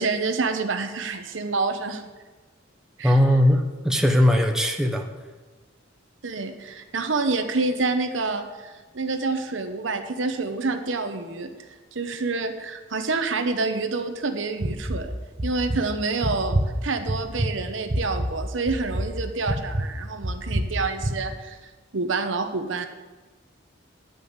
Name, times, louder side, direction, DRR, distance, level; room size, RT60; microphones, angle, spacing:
voice 1, 0.0-2.0 3.0-3.2 6.2-11.5 11.9-15.2 15.4-21.6 21.9-22.9, right 3 dB, 70° right, 7 dB, 0.9 m, -27 dB
voice 2, 3.0-5.1, left 1 dB, 5° right, 3 dB, 0.8 m, -19 dB
sound 1, 14.6-15.1 15.4-15.8 16.2-16.7 17.1-17.5 17.9-18.3 18.7-19.1 19.5-19.9 20.2-20.7 21.0-21.1, right 1 dB, 35° right, 0.9 m, -25 dB
10.5 x 5.4 x 7.9 m, 1.2 s
head